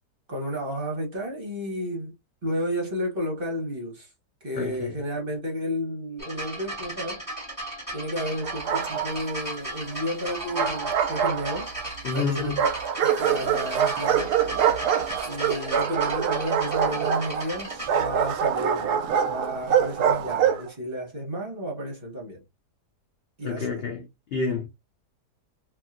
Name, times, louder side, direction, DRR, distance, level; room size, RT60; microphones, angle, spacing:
voice 1, 0.3-2.1 2.4-4.1 4.4-7.2 7.9-11.7 12.1-12.6 13.0-14.4 15.2-22.4 23.4-23.8, equal, 40° right, 1.1 m, -32 dB
voice 2, 4.5-5.0 12.0-12.6 23.4-24.7, left 4 dB, 75° left, 0.5 m, -29 dB
sound 1, 6.2-17.9 18.8-18.9, right 1 dB, 10° left, 1.6 m, -36 dB
Bark, 8.4-9.3 10.3-11.9 12.6-20.7, right 8 dB, 75° right, 1.1 m, -25 dB
2.8 x 2.8 x 2.4 m
omnidirectional pair, 1.8 m